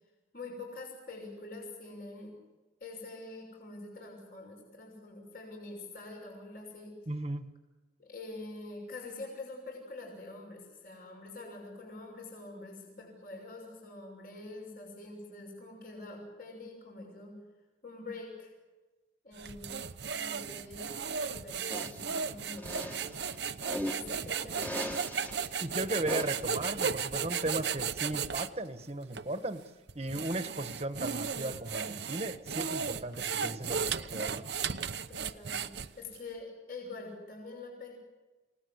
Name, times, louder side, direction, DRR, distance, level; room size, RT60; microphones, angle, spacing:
voice 1, 0.3-2.4 2.8-7.0 8.0-17.4 17.8-18.5 19.2-23.2 23.8-25.0 35.1-37.9, left 2 dB, 50° left, 0 dB, 6.4 m, -45 dB
voice 2, 7.1-7.5 25.6-29.6 29.9-34.4, right 2 dB, 35° right, 9 dB, 1.4 m, -36 dB
sound 1, 19.4-28.5 29.1-29.3 29.9-36.2, right 6 dB, 65° right, 0.8 m, -35 dB
sound 2, 21.7-22.1 22.6-24.1 24.6-25.5 26.1-26.5, left 1 dB, 10° left, 1.7 m, -39 dB
29.5 x 18.5 x 8.1 m, 1.2 s
head